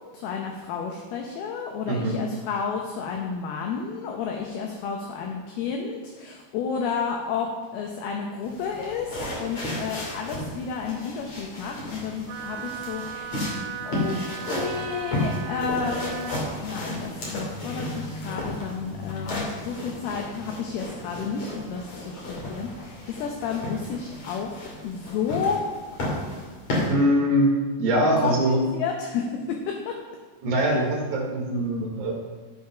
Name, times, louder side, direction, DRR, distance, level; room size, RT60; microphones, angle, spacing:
voice 1, 0.1-13.3 13.8-14.2 14.5-25.6 28.2-30.0, left 6 dB, 75° left, 1 dB, 2.4 m, -31 dB
voice 2, 1.9-2.2 26.9-27.5 27.8-28.6 30.4-32.1, right 1 dB, 60° right, -1 dB, 2.9 m, -22 dB
sound 1, 8.4-26.9, left 1 dB, 40° left, 3.1 m, -33 dB
Wind instrument woodwind instrument, 12.3-16.5, right 9 dB, 85° right, 2.5 m, -37 dB
13.5 x 5.1 x 5.7 m, 1.4 s
omnidirectional pair, 5.4 m